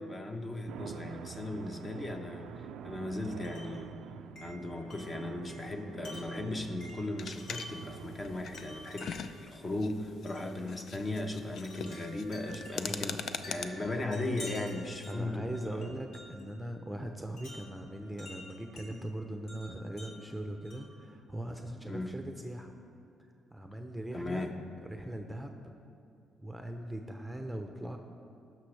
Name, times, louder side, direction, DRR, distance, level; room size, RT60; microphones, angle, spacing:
voice 1, 0.0-3.9 4.4-13.2 13.5-15.9 21.8-22.1 24.1-24.5, left 2 dB, 30° left, 4 dB, 1.0 m, -37 dB
sound 1, 0.7-16.4, right 9 dB, 85° right, 0.3 m, -49 dB
Wind chime, 3.4-3.8 4.4-7.9 8.5-9.4 10.3-10.5 11.6-16.5 17.4-18.9 19.5-21.0, left 1 dB, 80° left, 2.2 m, -50 dB
sound 2, 7.2-13.6, left 6 dB, 65° left, 0.5 m, -42 dB
voice 2, 12.9-13.2 15.1-22.7 23.5-24.5 24.9-25.6 26.4-28.0, right 1 dB, 5° right, 4 dB, 0.7 m, -40 dB
17.5 x 6.2 x 3.4 m, 2.5 s
cardioid pair, 90°, 0 cm